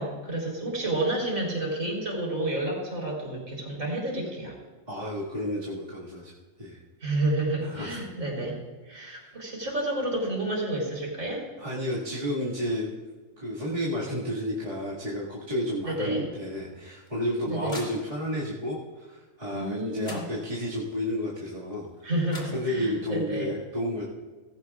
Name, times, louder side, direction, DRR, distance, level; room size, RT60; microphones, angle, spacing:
voice 1, 0.0-4.5 7.0-8.6 8.8-11.4 14.1-14.2 15.8-16.3 17.5-17.8 19.5-20.3 22.0-23.5, right 1 dB, 75° right, -2 dB, 4.2 m, -30 dB
voice 2, 4.9-6.3 6.6-6.8 7.6-8.0 11.6-12.9 13.4-22.1 22.5-24.0, equal, 30° right, -8 dB, 2.0 m, -31 dB
sound 1, 16.9-18.5 19.6-19.7 20.0-20.8 22.0-22.1 22.3-23.1, left 1 dB, 50° left, 2.6 m, -44 dB
18.0 x 16.0 x 2.4 m, 1.3 s
omnidirectional pair, 1.3 m